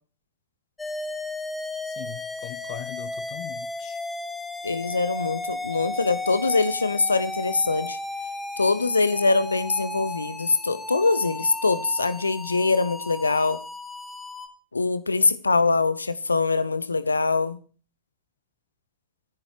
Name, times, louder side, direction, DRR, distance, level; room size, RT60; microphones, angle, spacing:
sound 1, 0.8-14.5, left 2 dB, 10° left, 1.6 m, -34 dB
voice 1, 1.9-4.0, left 16 dB, 45° left, 0.6 m, -40 dB
voice 2, 4.6-8.0 8.6-13.6 14.7-17.6, left 3 dB, 80° left, 0.9 m, -23 dB
25.0 x 10.5 x 3.1 m
figure-of-eight pair, 90°, 0 cm